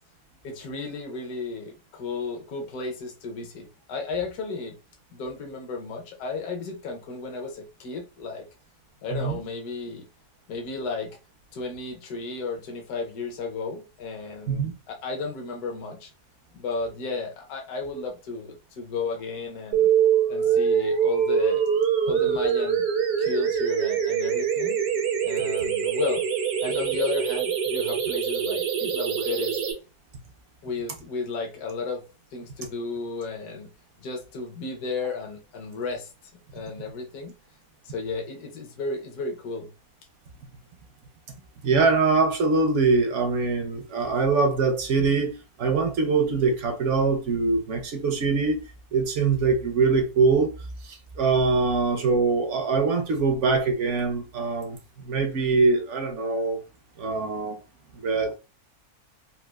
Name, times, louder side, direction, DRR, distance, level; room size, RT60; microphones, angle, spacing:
voice 1, 0.4-4.8 5.1-8.4 9.0-10.1 10.5-11.2 11.5-16.1 16.5-19.9 20.3-21.6 22.1-22.9 23.2-24.8 25.2-26.2 26.6-29.6 30.6-32.0 32.3-33.7 34.0-36.1 36.5-37.3 37.8-39.7, left 4 dB, 75° left, 1.3 m, -33 dB
sound 1, 19.7-29.7, right 8 dB, 90° right, 1.3 m, -24 dB
voice 2, 41.6-48.6 48.9-50.5 50.8-56.6 57.0-57.6 58.0-58.4, right 4 dB, 65° right, 0.8 m, -23 dB
4.0 x 2.4 x 2.3 m
omnidirectional pair, 1.7 m